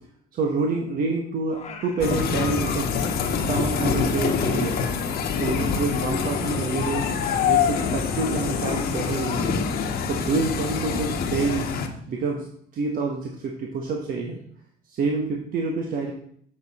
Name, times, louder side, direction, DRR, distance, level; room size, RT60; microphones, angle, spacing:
voice 1, 0.3-2.9 3.3-4.8 5.4-7.1 7.4-9.7 10.0-11.7 12.1-12.5 12.7-14.4 14.9-16.1, right 4 dB, 55° right, 1 dB, 1.2 m, -27 dB
Singing, 1.5-2.6 2.9-6.5 6.8-10.0, left 5 dB, 40° left, 1.2 m, -42 dB
sound 1, 2.0-11.9, left 6 dB, 65° left, 1.2 m, -25 dB
7.4 x 7.2 x 4.2 m, 0.65 s
cardioid pair, 110°, 17 cm